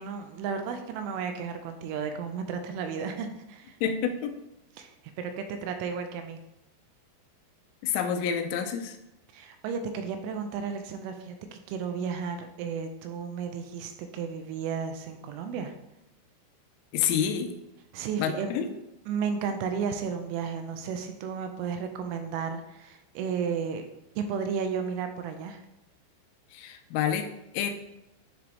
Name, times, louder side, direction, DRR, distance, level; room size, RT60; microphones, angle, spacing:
voice 1, 0.0-3.8 4.8-4.9 5.2-6.4 9.3-15.7 17.9-18.5 19.1-23.9 24.2-25.6, right 6 dB, 85° right, 6 dB, 2.9 m, -33 dB
voice 2, 3.8-4.4 7.8-9.0 16.9-17.6 18.2-18.7 26.5-27.3 27.5-27.7, left 8 dB, 85° left, 6 dB, 3.1 m, -28 dB
9.7 x 3.9 x 3.5 m, 0.91 s
omnidirectional pair, 5.8 m